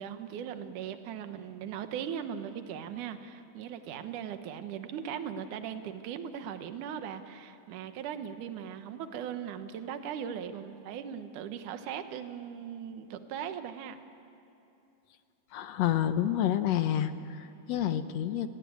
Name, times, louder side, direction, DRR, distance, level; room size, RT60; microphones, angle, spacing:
voice 1, 0.0-14.0, right 8 dB, 70° right, 8 dB, 2.6 m, -39 dB
voice 2, 15.5-18.5, left 11 dB, 70° left, 10 dB, 1.8 m, -29 dB
29.5 x 18.5 x 9.6 m, 2.8 s
omnidirectional pair, 3.8 m